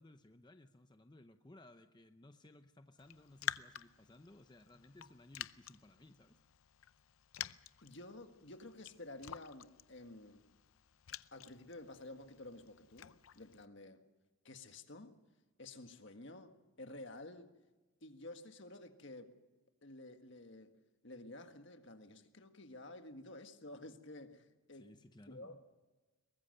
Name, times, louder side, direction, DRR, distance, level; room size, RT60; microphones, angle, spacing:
voice 1, 0.0-6.4 24.7-25.6, left 1 dB, 20° left, 0.6 m, -59 dB
Raindrop, 3.0-13.7, left 10 dB, 75° left, 0.6 m, -49 dB
voice 2, 7.8-10.5 11.3-14.1 14.4-15.2 15.6-17.6 18.0-19.4 19.8-20.8 21.0-25.0 25.3-25.6, left 2 dB, 60° left, 1.7 m, -52 dB
23.0 x 20.0 x 6.6 m
head